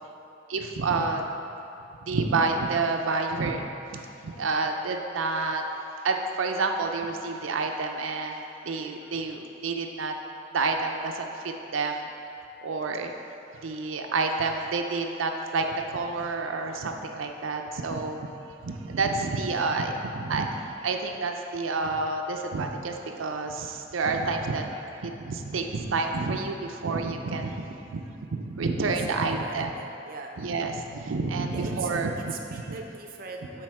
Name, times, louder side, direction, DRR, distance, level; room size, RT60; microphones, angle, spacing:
voice 1, 0.5-1.2 2.0-3.6 3.9-5.6 6.0-10.1 10.5-12.1 12.6-13.1 13.6-18.3 18.6-28.0 28.3-29.7 30.4-32.8, right 3 dB, 85° right, 3 dB, 0.5 m, -29 dB
voice 2, 28.8-30.4 31.5-33.6, right 4 dB, 50° right, 1 dB, 0.6 m, -41 dB
7.5 x 4.7 x 4.7 m, 2.8 s
head